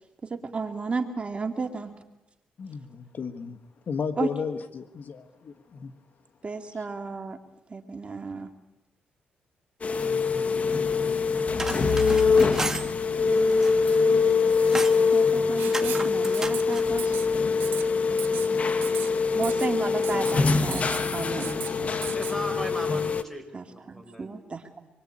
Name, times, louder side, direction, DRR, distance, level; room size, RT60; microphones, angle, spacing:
voice 1, 0.2-2.0 4.2-4.3 6.4-7.4 7.7-8.5 15.1-17.2 19.3-22.1 23.5-24.9, right 4 dB, 35° right, 5 dB, 2.4 m, -33 dB
voice 2, 2.6-3.6 3.9-5.9, left 5 dB, 60° left, 9 dB, 1.4 m, -34 dB
sound 1, 9.8-23.2, left 4 dB, 40° left, 1.5 m, -24 dB
sound 2, 11.4-12.9 13.4-14.0 14.3-15.0 15.6-16.9, right 2 dB, 15° right, 1.6 m, -33 dB
Writing, 15.6-16.1 16.3-16.6 17.0-17.3 17.6-17.8 18.2-18.5 18.8-19.1 19.4-19.7 20.0-20.3 20.7-21.0 21.4-21.7 22.0-22.3, right 11 dB, 90° right, 1.4 m, -37 dB
voice 3, 22.1-24.4, equal, 5° left, 5 dB, 6.2 m, -37 dB
26.0 x 22.5 x 8.7 m, 1.0 s
cardioid pair, 80°, 3 cm